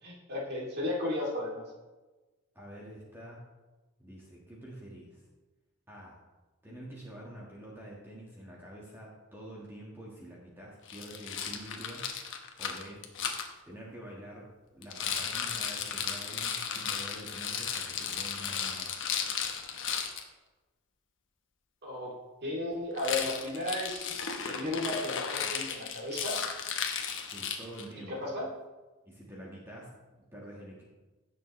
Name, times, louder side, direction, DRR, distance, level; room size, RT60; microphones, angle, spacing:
voice 1, 0.0-1.7 21.8-22.1 22.4-24.0 24.4-26.4 28.1-28.5, left 1 dB, 50° right, -3 dB, 2.7 m, -34 dB
voice 2, 2.5-3.4 4.0-5.2 5.9-6.2 6.6-12.1 12.6-13.0 13.7-19.1 27.2-28.3 29.0-30.8, right 1 dB, 10° right, -4 dB, 1.6 m, -47 dB
Rattle, 10.9-13.5 14.8-20.2 22.9-27.9, left 7 dB, 60° left, 1.1 m, -35 dB
16.5 x 6.6 x 3.2 m, 1.2 s
head